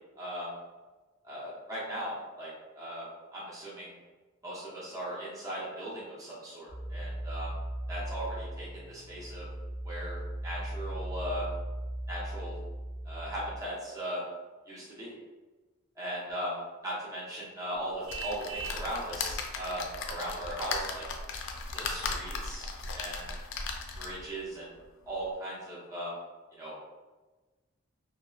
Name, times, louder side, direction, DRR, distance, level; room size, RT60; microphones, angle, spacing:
voice 1, 0.2-0.5 1.2-3.0 3.3-3.9 4.4-7.5 7.9-9.5 9.8-10.2 10.4-11.5 12.1-12.6 13.0-14.2 14.7-15.1 16.0-16.6 16.8-21.0 21.7-23.3 24.0-24.7 25.0-26.1 26.6-26.8, right 1 dB, 15° right, -8 dB, 0.6 m, -38 dB
sound 1, 6.7-13.6, right 1 dB, 60° right, 0.9 m, -38 dB
sound 2, 18.1-24.3 24.8-24.9 25.2-25.3, left 4 dB, 65° left, 0.3 m, -37 dB
Vehicle horn car horn honking, 18.1-18.9, right 6 dB, 75° right, 0.3 m, -39 dB
2.7 x 2.0 x 2.3 m, 1.2 s
head